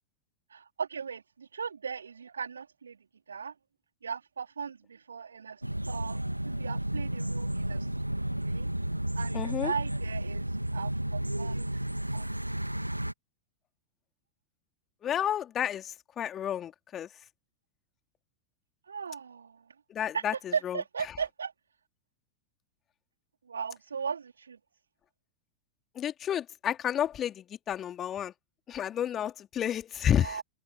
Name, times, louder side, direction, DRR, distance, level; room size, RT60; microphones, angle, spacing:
voice 1, 0.5-3.0 3.3-3.5 4.0-6.2 6.6-8.7 9.2-11.8 12.1-12.7 18.9-19.7 20.1-21.5 23.4-24.6 30.2-30.4, right 6 dB, 70° right, 4.0 m, -38 dB
sound 1, 5.6-13.1, right 1 dB, 85° right, 2.3 m, -32 dB
voice 2, 9.3-9.7 15.0-17.1 19.9-20.8 25.9-28.3 28.7-30.4, left 10 dB, 25° left, 2.8 m, -31 dB
figure-of-eight pair, 90°, 0 cm